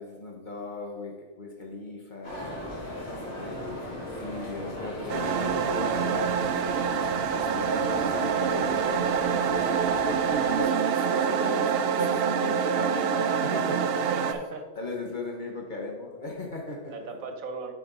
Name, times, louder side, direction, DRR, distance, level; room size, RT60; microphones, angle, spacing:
voice 1, 0.0-2.5 3.1-10.2 10.5-14.1 14.7-17.1, left 2 dB, 40° left, 0 dB, 1.2 m, -38 dB
sound 1, 2.2-10.6, left 1 dB, 80° left, 2.5 m, -37 dB
sound 2, 5.1-14.3, right 7 dB, 60° right, 0.6 m, -26 dB
voice 2, 9.5-10.0 14.0-14.6 16.9-17.7, right 4 dB, 85° right, 5 dB, 1.3 m, -38 dB
9.5 x 4.9 x 3.9 m, 1.4 s
omnidirectional pair, 1.4 m